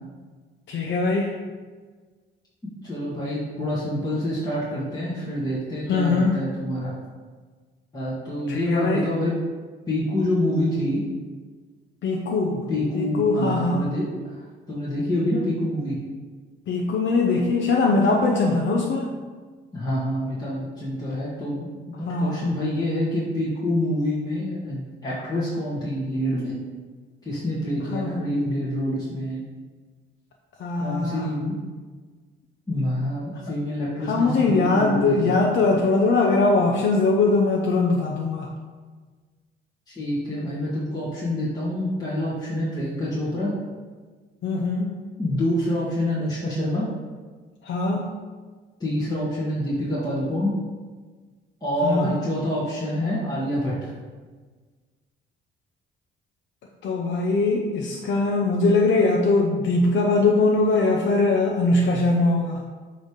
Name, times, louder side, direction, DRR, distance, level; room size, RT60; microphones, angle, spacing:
voice 1, 0.7-1.3 5.9-6.4 8.5-9.1 12.0-12.7 12.9-13.9 16.7-19.1 22.0-22.5 27.9-28.1 30.6-31.3 33.3-33.4 34.0-38.5 44.4-45.0 47.6-48.1 51.8-52.2 56.8-62.6, left 3 dB, 70° left, 0 dB, 0.8 m, -21 dB
voice 2, 2.8-6.9 7.9-9.3 9.9-11.0 12.7-14.1 14.7-16.0 19.7-26.5 27.3-29.4 30.8-31.6 32.7-35.4 39.9-43.5 45.2-46.9 48.8-50.5 51.6-53.9, left 1 dB, 20° left, -9 dB, 1.9 m, -26 dB
7.8 x 3.4 x 5.2 m, 1.4 s
cardioid pair, 90°, 20 cm